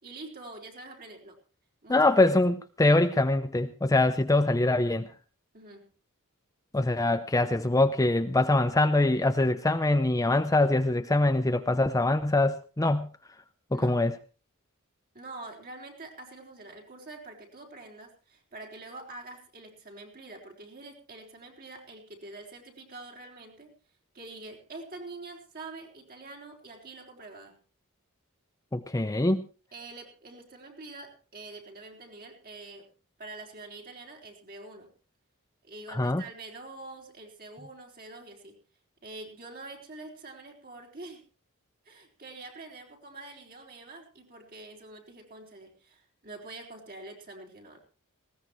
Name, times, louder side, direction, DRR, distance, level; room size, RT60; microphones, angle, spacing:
voice 1, 0.0-1.4 1.8-2.1 5.5-5.9 13.7-14.0 15.1-23.7 24.1-27.6 29.7-32.9 33.2-34.9 35.6-38.6 39.0-41.2 41.8-47.8, right 2 dB, 45° right, 4.1 m, -45 dB
voice 2, 1.9-5.1 6.7-13.1 13.7-14.1 28.7-29.4 35.9-36.2, left 2 dB, 15° left, 0.6 m, -24 dB
19.5 x 17.0 x 3.2 m
head